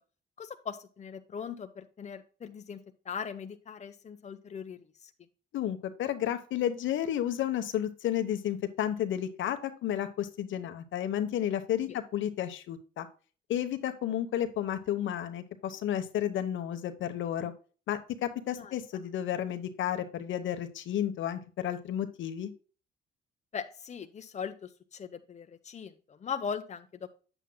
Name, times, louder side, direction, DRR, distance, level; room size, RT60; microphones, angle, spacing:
voice 1, 0.4-5.1 11.9-12.0 18.5-18.7 23.5-27.1, left 6 dB, 35° left, 7 dB, 0.8 m, -40 dB
voice 2, 5.5-13.1 13.5-17.5 17.9-22.5, left 10 dB, 75° left, 8 dB, 1.0 m, -32 dB
9.0 x 7.8 x 2.2 m, 0.38 s
cardioid pair, 90°, 20 cm